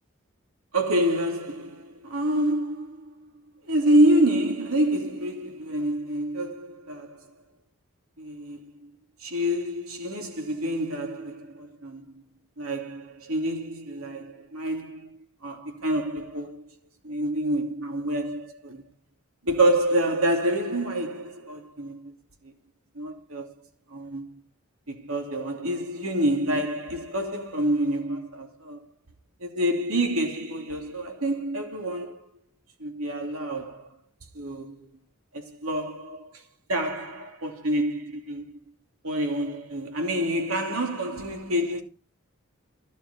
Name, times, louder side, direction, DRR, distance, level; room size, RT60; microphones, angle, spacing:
voice 1, 0.7-3.3 3.6-7.2 8.2-8.9 9.2-12.2 12.6-16.7 17.0-18.8 19.4-22.1 22.4-22.5 22.9-23.5 23.9-24.3 24.9-28.8 29.4-32.3 32.8-33.9 34.3-34.9 35.3-36.4 36.7-38.5 39.0-41.8, right 1 dB, 80° right, 2.8 m, -27 dB
15.0 x 7.3 x 5.4 m
head